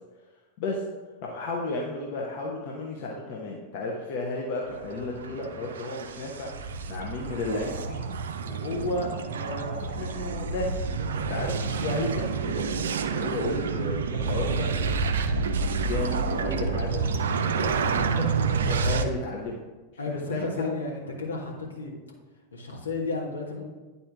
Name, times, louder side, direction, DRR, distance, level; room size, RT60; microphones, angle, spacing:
voice 1, 1.2-6.5 6.9-8.1 8.5-10.8 11.1-12.7 13.0-15.2 15.7-17.0 17.5-18.3 18.6-19.6 20.1-20.7, left 2 dB, 50° left, -1 dB, 0.9 m, -33 dB
sound 1, 4.7-19.0, right 5 dB, 65° right, 0.4 m, -29 dB
sound 2, 10.5-16.3, equal, 20° left, 1.3 m, -42 dB
voice 2, 20.0-21.9 22.5-23.6, left 3 dB, 75° left, -1 dB, 1.4 m, -33 dB
10.0 x 4.3 x 3.4 m, 1.3 s
figure-of-eight pair, 90°, 0 cm